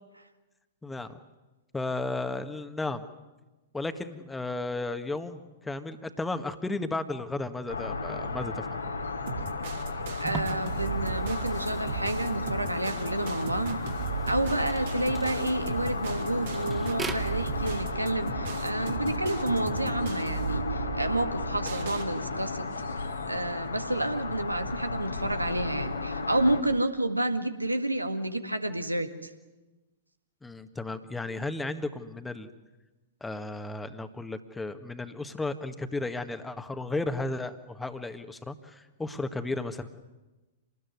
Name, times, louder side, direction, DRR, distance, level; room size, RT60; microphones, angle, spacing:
voice 1, 0.8-1.2 1.7-3.0 3.7-8.9 30.4-32.5 33.2-39.9, left 2 dB, 10° left, 9 dB, 1.7 m, -34 dB
sound 1, 7.7-26.6, left 3 dB, 80° left, 2.8 m, -34 dB
sound 2, 9.3-22.1, right 6 dB, 60° right, 3.8 m, -36 dB
sound 3, 10.2-17.8, right 4 dB, 15° right, 2.1 m, -43 dB
voice 2, 10.2-13.8 14.3-22.7 23.3-29.3, right 1 dB, 90° right, 8 dB, 1.9 m, -30 dB
27.0 x 20.0 x 9.6 m, 1.1 s
figure-of-eight pair, 105°, 0 cm